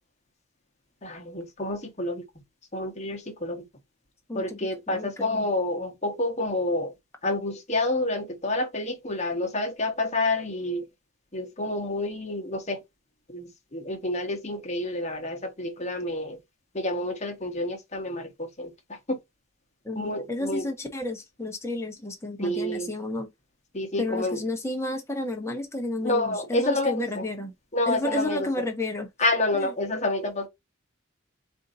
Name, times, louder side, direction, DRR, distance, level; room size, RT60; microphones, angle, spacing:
voice 1, 1.0-2.2 2.7-3.6 4.3-6.9 7.2-10.9 11.3-12.8 13.3-16.4 16.7-19.2 19.9-20.7 22.4-22.9 23.7-24.4 26.0-27.3 27.7-28.5 29.2-30.5, left 2 dB, 35° left, 1.0 m, -29 dB
voice 2, 4.3-5.4 19.8-23.3 24.0-27.5 27.9-29.1 29.5-29.7, left 1 dB, 15° left, 0.9 m, -31 dB
4.3 x 2.6 x 4.0 m
head